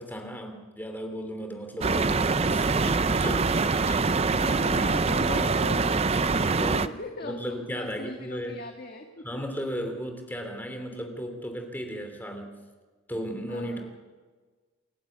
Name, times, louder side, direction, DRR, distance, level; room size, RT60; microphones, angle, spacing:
voice 1, 0.0-3.5 6.6-8.6 9.2-12.5 13.1-14.0, equal, 10° left, 4 dB, 2.9 m, -35 dB
sound 1, 1.8-6.9, right 4 dB, 30° right, 0.5 m, -24 dB
voice 2, 4.1-7.3 7.7-9.2 13.5-13.9, left 3 dB, 45° left, 3 dB, 1.6 m, -39 dB
28.5 x 11.5 x 8.4 m, 1.4 s
head